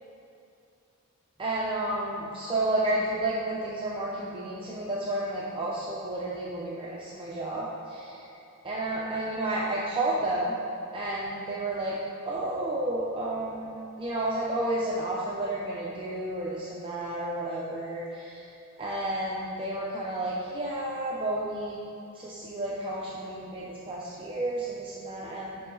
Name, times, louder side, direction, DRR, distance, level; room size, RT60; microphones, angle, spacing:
voice 1, 1.4-8.2 8.6-10.5 10.9-12.0 12.2-18.5 18.8-21.8 22.1-25.7, right 1 dB, 25° right, -6 dB, 0.6 m, -31 dB
9.9 x 3.8 x 3.8 m, 2.6 s
head